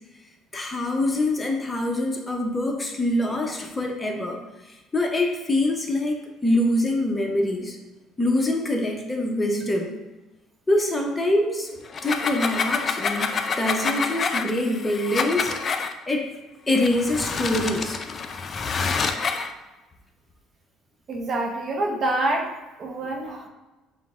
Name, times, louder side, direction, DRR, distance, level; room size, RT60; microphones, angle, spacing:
voice 1, 0.5-7.8 8.2-9.9 10.7-13.3 13.6-15.5 16.1-16.3 16.7-18.0, left 1 dB, 15° left, 1 dB, 0.7 m, -25 dB
sound 1, 11.9-15.9 16.7-19.5, left 5 dB, 35° left, 0.4 m, -27 dB
voice 2, 21.1-22.5 22.8-23.5, right 2 dB, 45° right, 3 dB, 0.6 m, -26 dB
5.6 x 2.1 x 3.6 m, 1.1 s
cardioid pair, 105°, 0 cm